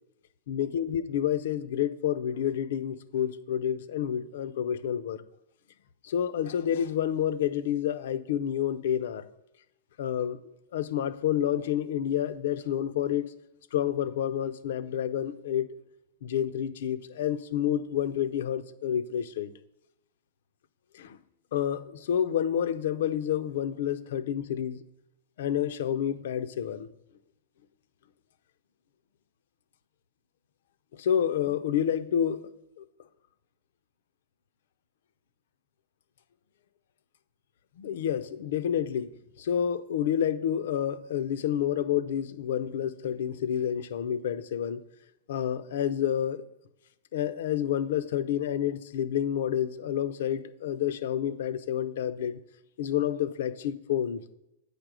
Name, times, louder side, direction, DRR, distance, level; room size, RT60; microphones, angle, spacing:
voice 1, 0.5-5.2 6.0-9.3 10.0-13.3 13.7-15.8 16.2-19.5 20.9-21.2 21.5-24.8 25.4-26.9 30.9-32.5 32.8-32.9 37.8-39.1 39.4-44.8 45.3-46.4 47.1-52.4 52.8-54.2, left 9 dB, 65° left, 13 dB, 0.5 m, -29 dB
8.9 x 5.1 x 6.1 m, 0.92 s
supercardioid pair, 170°, 0 cm